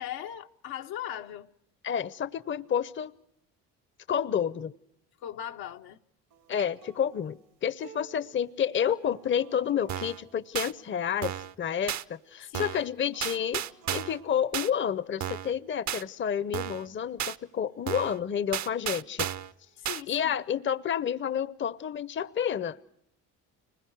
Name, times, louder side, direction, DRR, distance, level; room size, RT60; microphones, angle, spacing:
voice 1, 0.0-1.5 5.2-6.0 12.5-12.8 19.8-20.4, left 11 dB, 75° left, 1.1 m, -39 dB
voice 2, 1.8-3.1 4.1-4.7 6.5-13.6 13.9-19.3 20.1-22.8, left 8 dB, 30° left, 0.7 m, -30 dB
Acoustic guitar, 6.3-11.5 13.1-14.3, right 7 dB, 90° right, 2.7 m, -54 dB
sound 1, 9.9-10.2 10.5-10.7 11.2-11.5 11.9-12.0 12.5-12.9 13.2-14.2 14.5-14.7 15.2-15.5 15.9-16.0 16.5-16.9 17.2-17.4 17.9-18.2 18.5-19.5 19.8-20.0, right 10 dB, 50° right, 0.7 m, -33 dB
30.0 x 21.0 x 4.6 m
supercardioid pair, 75°, 38 cm